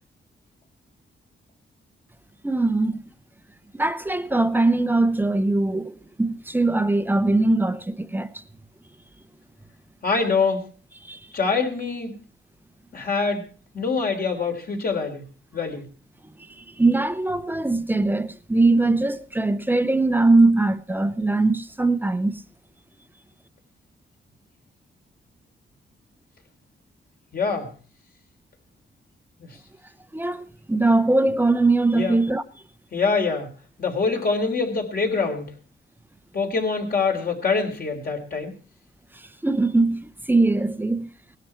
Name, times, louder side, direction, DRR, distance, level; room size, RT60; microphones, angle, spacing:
voice 1, 2.4-3.0 3.7-8.4 11.0-11.2 16.6-22.4 30.1-32.4 39.4-41.1, right 2 dB, 10° right, 0.7 m, -21 dB
voice 2, 10.0-10.7 11.3-12.1 12.9-13.4 13.7-15.3 15.5-15.9 27.3-27.7 29.4-29.5 31.9-32.2 32.9-33.5 33.8-35.5 36.3-38.5, left 4 dB, 50° left, 3.5 m, -24 dB
18.5 x 12.0 x 4.5 m
wide cardioid pair, 130°, 20 cm